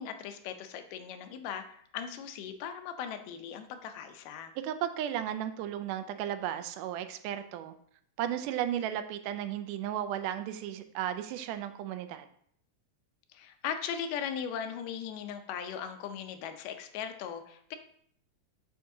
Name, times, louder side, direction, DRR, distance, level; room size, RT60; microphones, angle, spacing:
voice 1, 0.0-4.5 13.3-17.8, left 8 dB, 85° left, 7 dB, 2.3 m, -38 dB
voice 2, 4.6-7.7 8.2-12.3, right 11 dB, 85° right, 9 dB, 2.0 m, -34 dB
7.0 x 6.4 x 2.7 m, 0.64 s
omnidirectional pair, 3.7 m